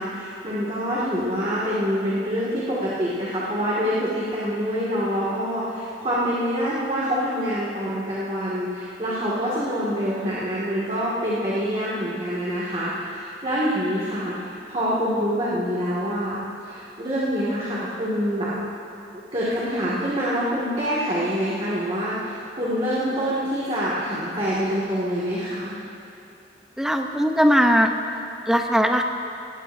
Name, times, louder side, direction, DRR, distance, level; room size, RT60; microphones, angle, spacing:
voice 1, 0.0-16.4 16.6-18.5 19.1-25.7, equal, 35° right, -8 dB, 2.2 m, -26 dB
voice 2, 26.8-27.9 28.5-29.0, equal, 5° right, 3 dB, 0.8 m, -19 dB
19.5 x 16.0 x 2.7 m, 2.9 s
head